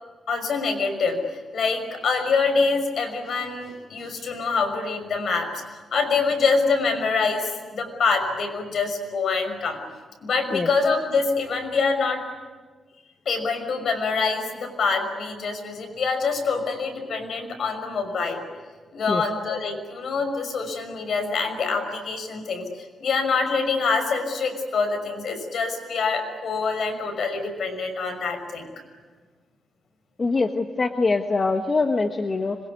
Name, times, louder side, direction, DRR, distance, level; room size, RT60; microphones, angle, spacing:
voice 1, 0.3-1.2 1.5-9.8 10.2-12.3 13.3-18.5 18.9-28.7, left 4 dB, 60° left, 6 dB, 5.9 m, -25 dB
voice 2, 30.2-32.6, left 3 dB, 30° left, 5 dB, 1.3 m, -23 dB
26.0 x 23.0 x 9.7 m, 1.4 s
cardioid pair, 130°, 0 cm